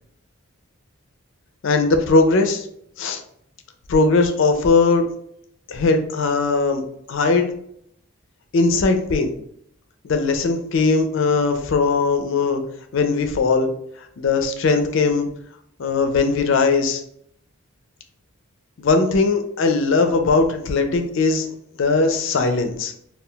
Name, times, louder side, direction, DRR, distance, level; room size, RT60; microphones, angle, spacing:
voice 1, 1.6-2.7 3.0-3.2 3.9-5.0 5.7-7.5 8.5-9.3 10.0-12.6 12.9-13.7 14.2-15.3 15.8-17.0 18.8-21.5 21.8-22.9, left 3 dB, 60° left, 6 dB, 0.4 m, -19 dB
2.3 x 2.2 x 3.6 m, 0.69 s
head